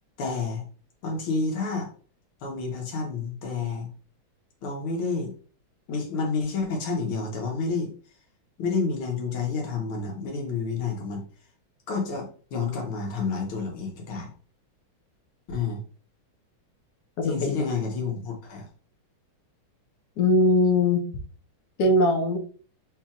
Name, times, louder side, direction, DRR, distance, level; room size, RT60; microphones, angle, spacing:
voice 1, 0.2-0.7 1.0-1.9 2.4-3.9 4.6-5.3 5.9-7.9 8.6-11.2 11.9-14.3 15.5-15.8 17.2-18.7, left 4 dB, 85° left, 1 dB, 2.0 m, -29 dB
voice 2, 17.2-17.5 20.2-21.0 21.8-22.4, left 1 dB, 65° left, 2 dB, 1.1 m, -20 dB
4.4 x 4.0 x 2.4 m, 0.42 s
omnidirectional pair, 2.3 m